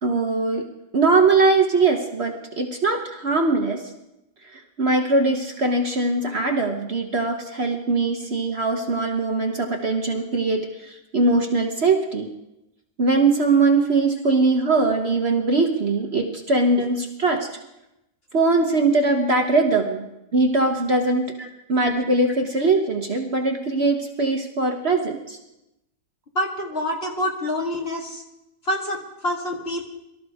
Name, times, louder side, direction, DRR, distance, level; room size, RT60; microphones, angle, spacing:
voice 1, 0.0-0.6 0.9-3.8 4.5-12.3 13.0-17.5 18.3-21.3 21.7-25.4, right 3 dB, 45° right, 3 dB, 1.2 m, -21 dB
voice 2, 26.3-28.2 28.6-29.9, left 1 dB, 40° left, 0 dB, 2.1 m, -27 dB
23.0 x 13.0 x 3.6 m, 0.90 s
omnidirectional pair, 1.7 m